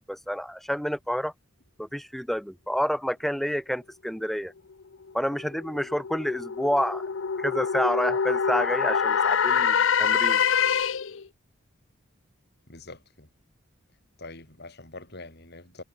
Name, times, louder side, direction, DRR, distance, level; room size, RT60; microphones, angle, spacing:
voice 1, 0.0-1.3 1.8-4.5 5.1-7.0 7.4-10.4, equal, ahead, 0.7 m, -29 dB
sound 1, 5.1-11.2, left 7 dB, 70° left, 0.7 m, -25 dB
voice 2, 12.7-13.3 14.2-15.8, left 2 dB, 55° left, 7.2 m, -44 dB
head